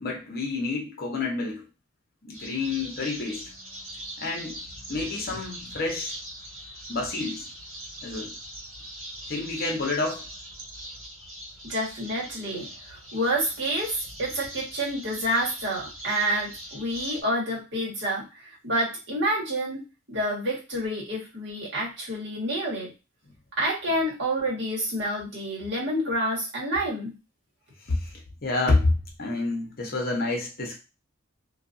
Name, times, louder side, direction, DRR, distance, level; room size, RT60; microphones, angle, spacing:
voice 1, 0.0-1.7 2.2-3.5 4.2-4.6 4.9-6.1 6.9-7.5 8.0-8.4 9.3-10.3 27.8-30.8, left 3 dB, 45° left, 0.8 m, -28 dB
sound 1, 2.3-17.2, right 1 dB, 85° right, 1.6 m, -41 dB
voice 2, 11.6-22.9 23.6-27.1, right 1 dB, 60° right, 1.5 m, -28 dB
2.7 x 2.5 x 2.6 m
head